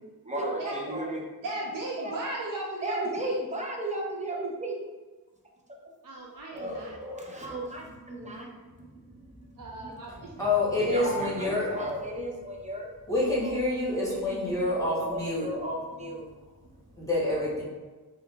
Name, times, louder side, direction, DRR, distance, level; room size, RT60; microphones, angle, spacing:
voice 1, 0.3-1.3 2.0-2.1 2.8-4.8 5.8-5.9 6.5-10.4 10.8-12.9 13.4-13.5 14.0-16.3 16.7-17.1, right 1 dB, 20° right, -1 dB, 0.6 m, -35 dB
voice 2, 1.4-3.4 6.0-6.9 8.4-8.5 9.6-10.5, right 2 dB, 55° right, -3 dB, 0.6 m, -36 dB
voice 3, 10.4-11.7 13.1-15.5 17.0-17.6, left 2 dB, 10° left, -6 dB, 1.4 m, -27 dB
3.7 x 2.3 x 3.3 m, 1.2 s
wide cardioid pair, 80°, 39 cm